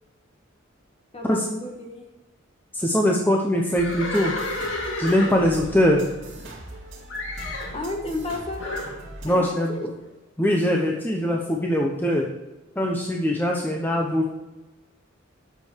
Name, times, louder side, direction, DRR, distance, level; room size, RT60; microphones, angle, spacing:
voice 1, 1.1-2.1 7.7-8.8 9.2-9.9, left 2 dB, 30° left, 2 dB, 1.6 m, -32 dB
voice 2, 2.7-4.3 5.0-6.0 9.2-9.8 10.4-12.3 12.8-14.3, equal, 10° left, -1 dB, 0.8 m, -22 dB
Livestock farm animals working animals, 3.7-6.8 7.1-7.8 8.6-9.0, left 2 dB, 90° left, 2.0 m, -32 dB
sound 1, 3.8-9.3, right 1 dB, 65° right, 2.5 m, -41 dB
8.7 x 7.0 x 4.5 m, 1.1 s
head